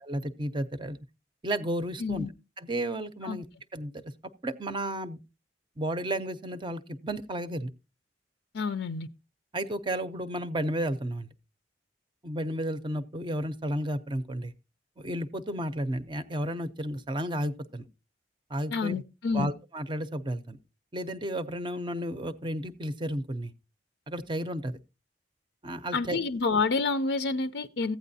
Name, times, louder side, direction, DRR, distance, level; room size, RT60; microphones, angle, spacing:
voice 1, 0.1-1.0 1.4-2.3 2.6-3.5 3.7-4.0 4.4-5.2 5.8-7.7 9.5-11.3 12.2-14.5 15.0-17.8 18.5-19.0 19.3-20.6 20.9-23.5 24.1-24.8 25.6-26.2, right 1 dB, 25° right, 0.5 m, -32 dB
voice 2, 8.5-9.1 18.7-19.5 25.9-28.0, left 4 dB, 70° left, 0.5 m, -28 dB
15.0 x 9.1 x 2.6 m
head